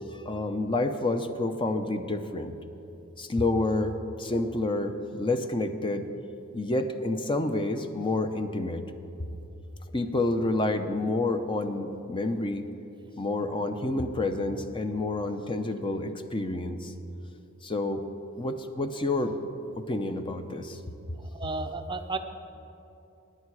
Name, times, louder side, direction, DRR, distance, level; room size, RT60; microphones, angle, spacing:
voice 1, 0.2-2.5 3.2-6.1 6.5-8.8 9.9-12.7 13.2-16.9 17.6-18.1 18.4-19.4 19.8-20.8, left 2 dB, 25° left, 7 dB, 0.7 m, -29 dB
voice 2, 21.2-22.2, right 3 dB, 20° right, 7 dB, 0.6 m, -33 dB
24.0 x 10.5 x 4.8 m, 2.9 s
head